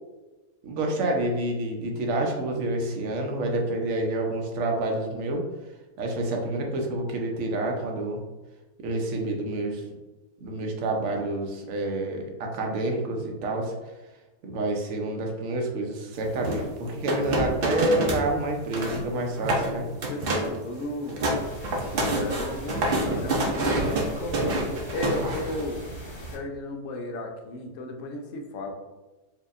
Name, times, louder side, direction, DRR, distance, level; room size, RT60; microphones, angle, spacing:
voice 1, 0.6-5.4 6.0-8.2 8.8-9.8 10.4-13.7 14.4-19.8 25.2-25.3, right 2 dB, 60° right, 1 dB, 0.9 m, -28 dB
sound 1, 16.4-18.3 18.6-19.0 19.4-19.7 20.0-20.6 20.9-25.6, right 1 dB, 85° right, 0.5 m, -27 dB
voice 2, 19.9-21.2 21.8-25.8 26.3-28.7, left 1 dB, 65° left, 2 dB, 0.8 m, -34 dB
sound 2, 21.3-26.3, right 1 dB, 30° left, 0.5 m, -40 dB
4.6 x 2.8 x 2.4 m, 1.1 s
omnidirectional pair, 1.8 m